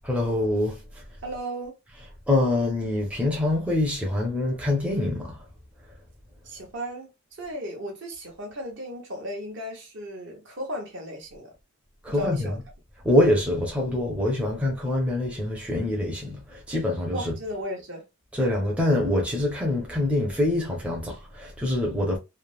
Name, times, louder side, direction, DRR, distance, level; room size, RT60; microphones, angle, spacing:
voice 1, 0.0-1.0 2.3-5.4 12.0-12.5 13.0-17.3 18.3-22.2, left 1 dB, 5° right, 0.6 m, -25 dB
voice 2, 1.2-1.7 6.4-7.1 7.4-11.5 12.1-12.6 17.1-18.0, equal, 55° right, 0.9 m, -35 dB
3.2 x 2.1 x 2.3 m
head